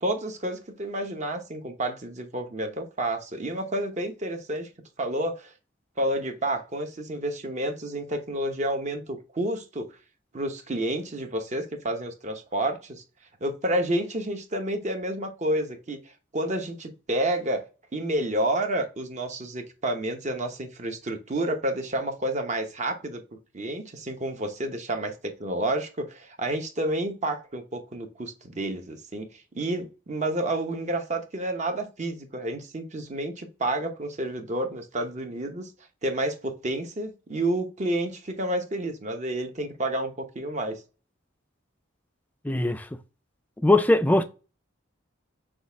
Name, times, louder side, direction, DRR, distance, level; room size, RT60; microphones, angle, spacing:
voice 1, 0.0-4.7 5.0-5.5 6.0-9.9 10.3-13.0 13.4-16.0 16.3-17.6 17.9-23.2 23.5-25.1 25.4-29.3 29.5-35.7 36.0-40.8, right 1 dB, 35° right, 0.9 m, -30 dB
voice 2, 42.4-43.0 43.6-44.2, left 2 dB, 10° left, 0.4 m, -21 dB
6.2 x 2.4 x 3.4 m
head